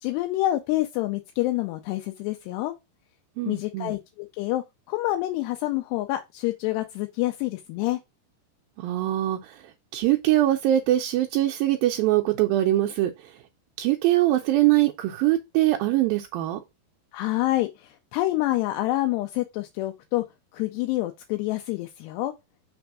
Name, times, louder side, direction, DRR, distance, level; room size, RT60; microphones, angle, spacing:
voice 1, 0.0-2.7 3.5-8.0 17.1-20.2 20.5-22.3, left 16 dB, 85° left, 2.8 m, -27 dB
voice 2, 3.4-4.0 8.8-9.6 9.9-13.4 13.8-16.6, right 14 dB, 85° right, 2.1 m, -23 dB
6.2 x 3.4 x 6.0 m
omnidirectional pair, 4.8 m